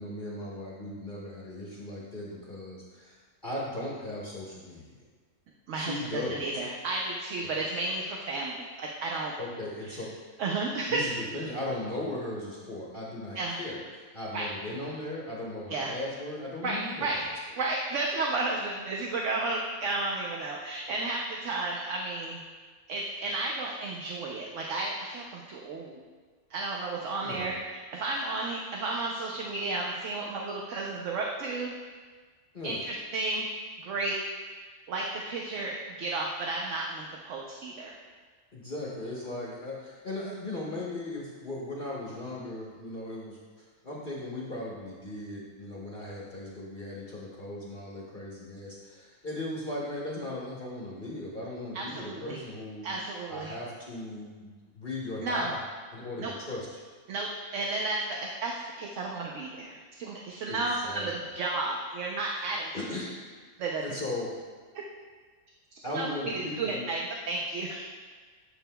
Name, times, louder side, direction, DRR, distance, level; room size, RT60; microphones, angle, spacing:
voice 1, 0.0-5.0 5.7-6.5 9.4-10.1 10.9-17.1 27.2-27.6 32.5-32.8 38.5-52.9 53.3-55.6 55.9-56.7 60.5-61.1 62.7-63.2 63.8-64.3 65.8-66.8, left 1 dB, 40° left, -5 dB, 1.0 m, -37 dB
voice 2, 5.7-9.3 9.8-10.0 10.4-11.0 13.3-13.6 14.3-14.5 15.7-15.9 16.6-17.2 17.6-22.4 22.9-26.0 26.5-31.7 32.6-33.5 33.8-34.2 34.9-38.0 51.7-52.4 52.8-53.5 55.2-55.5 56.2-56.3 57.1-62.7 63.6-63.9 65.7-67.8, right 2 dB, 60° right, -1 dB, 0.9 m, -33 dB
9.2 x 6.7 x 2.2 m, 1.5 s
omnidirectional pair, 1.6 m